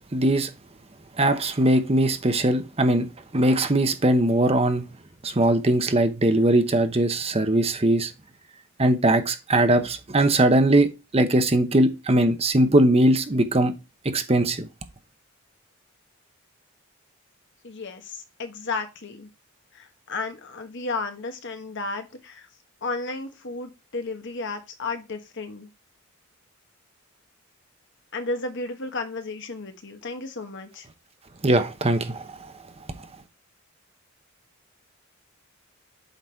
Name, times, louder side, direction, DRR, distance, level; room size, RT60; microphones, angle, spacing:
voice 1, 0.1-0.5 1.2-3.1 3.3-4.8 5.2-8.1 8.8-13.7 14.0-14.7 31.4-32.5, right 1 dB, 30° right, 0.8 m, -20 dB
voice 2, 17.6-19.3 19.7-22.5 22.8-25.7 28.1-30.9, left 3 dB, 55° left, 1.2 m, -33 dB
8.0 x 4.0 x 4.5 m
head